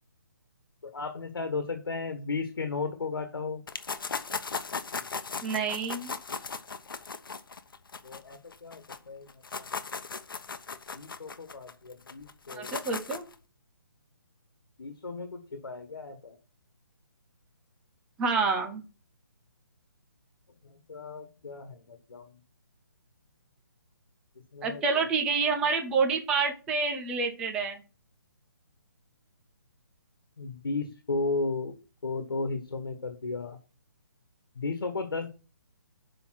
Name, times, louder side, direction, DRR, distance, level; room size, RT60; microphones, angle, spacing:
voice 1, 0.8-3.6 8.0-9.3 9.6-9.7 10.9-12.7 14.8-16.4 20.6-22.3 24.5-25.1 30.4-31.7 32.0-33.6 34.5-35.3, left 3 dB, 85° left, 7 dB, 1.5 m, -35 dB
sound 1, 3.7-9.0 9.3-13.3, left 5 dB, 70° left, 1.0 m, -37 dB
voice 2, 5.4-6.1 12.5-13.3 18.2-18.8 24.6-27.8, right 4 dB, 5° right, 4 dB, 0.5 m, -28 dB
7.1 x 5.3 x 5.9 m, 0.33 s
hypercardioid pair, 175°, 12 cm